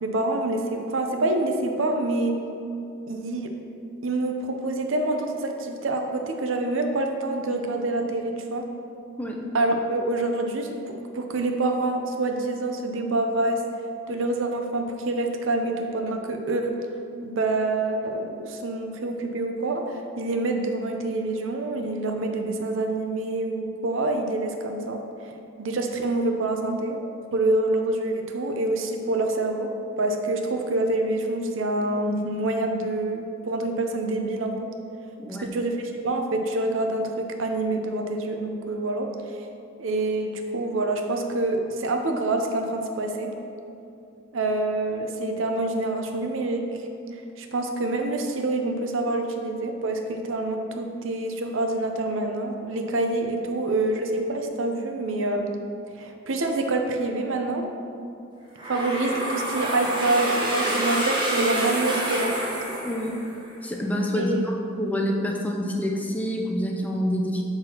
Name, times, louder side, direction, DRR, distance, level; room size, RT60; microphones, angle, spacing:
voice 1, 0.0-2.3 3.1-3.5 4.0-8.6 9.5-10.8 11.1-13.6 14.1-16.8 17.2-25.3 25.6-27.0 27.3-29.7 30.0-34.7 35.4-39.5 39.8-43.3 44.3-55.6 56.0-57.6 58.7-62.4 64.1-64.5, right 2 dB, 70° right, 4 dB, 0.6 m, -26 dB
sound 1, 58.6-63.5, right 1 dB, 25° right, 0.9 m, -27 dB
voice 2, 62.8-63.2 63.6-67.4, equal, 10° left, 0 dB, 0.5 m, -27 dB
6.6 x 6.0 x 2.9 m, 2.6 s
head